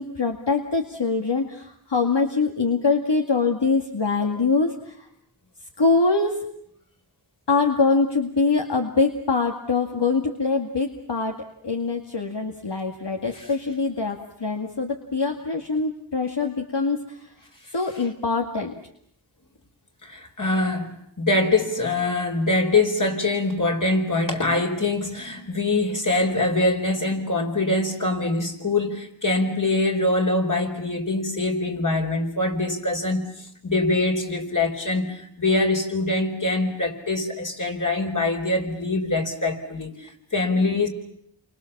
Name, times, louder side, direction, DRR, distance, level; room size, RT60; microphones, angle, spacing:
voice 1, 0.0-5.0 5.8-6.4 7.5-11.3 11.6-17.2 17.7-18.7, left 4 dB, 65° left, 2 dB, 2.2 m, -23 dB
voice 2, 20.0-40.9, left 2 dB, 45° left, 3 dB, 4.9 m, -24 dB
29.5 x 25.0 x 7.3 m, 0.70 s
wide cardioid pair, 55°, 44 cm